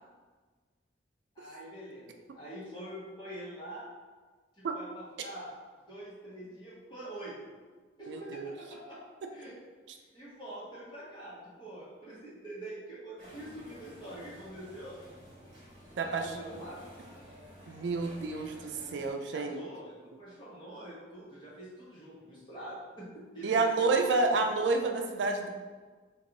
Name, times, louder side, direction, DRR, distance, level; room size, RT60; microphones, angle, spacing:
voice 1, 1.3-3.9 4.5-5.5 5.8-7.3 8.0-9.0 9.3-9.5 10.1-15.0 16.0-16.9 19.3-24.5, right 1 dB, 25° left, -9 dB, 1.2 m, -45 dB
voice 2, 8.1-8.5 16.0-16.5 17.7-19.6 23.4-25.5, right 3 dB, 75° right, 4 dB, 0.4 m, -29 dB
sound 1, 13.2-19.1, equal, 30° right, 1.4 m, -52 dB
3.2 x 2.5 x 3.9 m, 1.4 s
head